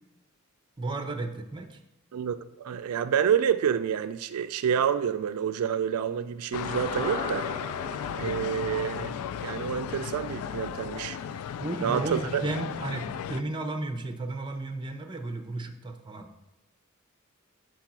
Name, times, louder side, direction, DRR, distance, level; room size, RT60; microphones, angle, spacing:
voice 1, 0.8-1.8 11.6-16.3, right 2 dB, 20° right, 0.7 m, -34 dB
voice 2, 2.1-7.5 8.2-9.2 9.4-11.2 11.8-12.4, right 8 dB, 80° right, 0.4 m, -28 dB
sound 1, 6.5-13.4, left 8 dB, 75° left, 0.3 m, -35 dB
sound 2, 6.7-11.0 11.2-11.3, left 1 dB, 35° left, 2.2 m, -40 dB
5.3 x 4.7 x 6.0 m
head